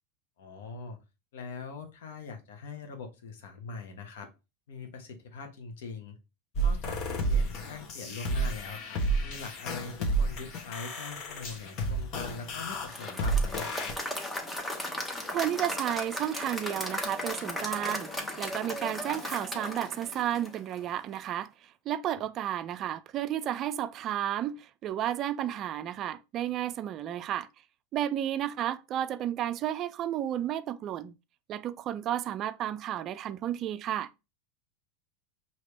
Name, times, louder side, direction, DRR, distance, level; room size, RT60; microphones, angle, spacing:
voice 1, 0.4-1.0 1.3-4.3 4.7-6.1 6.6-13.9, left 4 dB, 80° left, 1.2 m, -42 dB
sound 1, 6.6-13.9, right 2 dB, 50° left, 1.2 m, -31 dB
Applause / Crowd, 12.7-20.9, left 1 dB, 10° left, 1.0 m, -36 dB
voice 2, 15.3-27.5 27.9-31.1 31.5-34.1, right 11 dB, 40° right, 0.4 m, -32 dB
5.0 x 2.9 x 3.3 m
hypercardioid pair, 110°, 0 cm